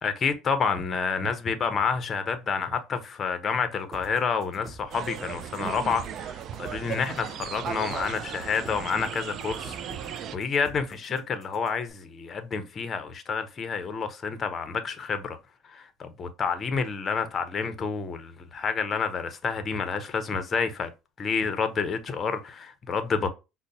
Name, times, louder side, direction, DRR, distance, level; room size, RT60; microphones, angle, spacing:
voice 1, 0.0-15.4 15.6-20.9 21.2-23.3, left 5 dB, 30° left, 0.6 m, -29 dB
sound 1, 3.9-11.9, right 1 dB, 25° right, 1.6 m, -46 dB
sound 2, 4.9-10.4, right 9 dB, 50° right, 0.3 m, -36 dB
5.0 x 2.0 x 2.7 m
supercardioid pair, 120°, 0 cm